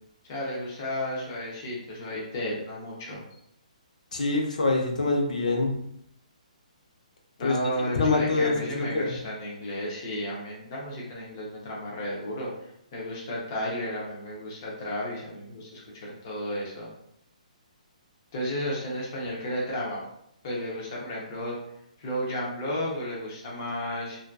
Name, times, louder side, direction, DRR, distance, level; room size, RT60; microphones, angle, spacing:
voice 1, 0.3-3.2 7.4-12.5 12.9-16.9 18.3-20.0 20.4-21.6 22.0-24.2, equal, 20° left, -4 dB, 0.4 m, -33 dB
voice 2, 4.1-5.7 7.4-7.6 8.0-9.1, left 3 dB, 70° left, 1 dB, 0.6 m, -25 dB
2.5 x 2.2 x 2.2 m, 0.76 s
hypercardioid pair, 175°, 4 cm